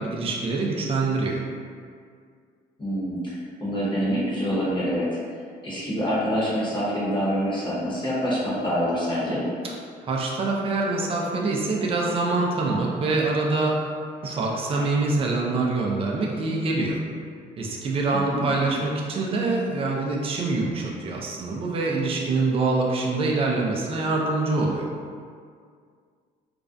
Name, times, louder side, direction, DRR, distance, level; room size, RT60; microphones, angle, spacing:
voice 1, 0.0-1.4 10.1-13.8 14.2-17.0 17.6-24.9, right 3 dB, 35° right, -2 dB, 0.4 m, -25 dB
voice 2, 2.8-5.1 5.6-9.5 18.1-18.5, equal, 30° left, -9 dB, 0.8 m, -26 dB
2.4 x 2.1 x 2.4 m, 2.1 s
cardioid pair, 110°, 17 cm